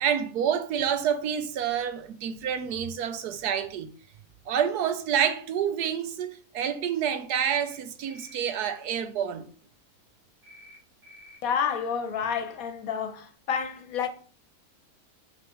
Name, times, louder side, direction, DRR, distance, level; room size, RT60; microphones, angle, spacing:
voice 1, 0.0-3.9 4.5-9.5, right 8 dB, 85° right, 1.3 m, -28 dB
sound 1, 7.4-7.8 8.0-8.4 10.4-10.8 11.0-11.4, left 1 dB, 60° right, 2.7 m, -50 dB
voice 2, 11.4-14.1, left 7 dB, 65° left, 1.2 m, -29 dB
5.5 x 5.2 x 3.7 m
omnidirectional pair, 1.6 m